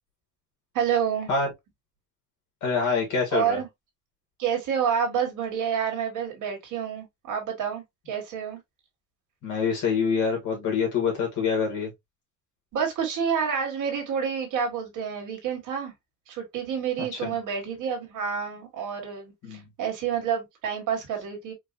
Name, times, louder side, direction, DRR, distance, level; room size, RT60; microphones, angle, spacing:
voice 1, 0.7-1.3 3.3-3.7 4.4-8.6 12.7-15.9 16.3-21.5, right 7 dB, 60° right, 1.8 m, -28 dB
voice 2, 2.6-3.6 9.4-11.9 17.1-17.3 19.4-19.6, left 5 dB, 55° left, 1.9 m, -26 dB
4.7 x 2.4 x 2.6 m
cardioid pair, 165°, 35 cm